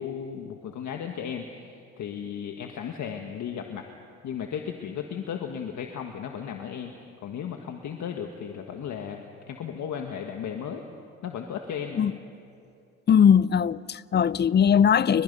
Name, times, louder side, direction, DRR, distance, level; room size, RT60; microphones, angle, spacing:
voice 1, 0.0-3.8 4.2-6.9 7.2-10.8 11.2-12.1, left 8 dB, 70° left, 1.6 m, -35 dB
voice 2, 13.1-15.2, left 8 dB, 35° left, 0.5 m, -20 dB
29.5 x 23.0 x 5.5 m
cardioid pair, 90°, 30 cm